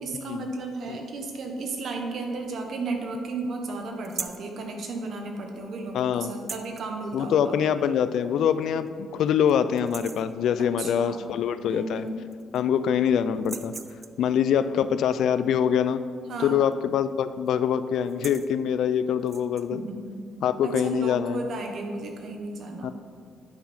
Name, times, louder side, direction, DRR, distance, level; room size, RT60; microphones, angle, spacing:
voice 1, 0.0-7.6 10.6-11.2 11.7-12.2 16.3-16.6 19.7-20.2 20.6-22.9, right 3 dB, 60° right, 3 dB, 1.2 m, -34 dB
sound 1, 4.0-4.5 6.3-6.9 8.2-8.3 8.8-8.9 9.3-9.5 9.8-10.3 11.7-11.8 12.1-12.8 13.3-14.3 16.6-16.9 17.2-17.5 17.9-18.5 19.2-19.7, right 5 dB, 40° right, 0.4 m, -40 dB
voice 2, 5.9-6.3 7.1-12.1 12.5-13.7 14.2-16.0 16.4-19.8 20.4-21.4 22.8-22.9, left 8 dB, 75° left, 13 dB, 0.3 m, -24 dB
9.4 x 5.6 x 4.3 m, 2.1 s
cardioid pair, 90°, 0 cm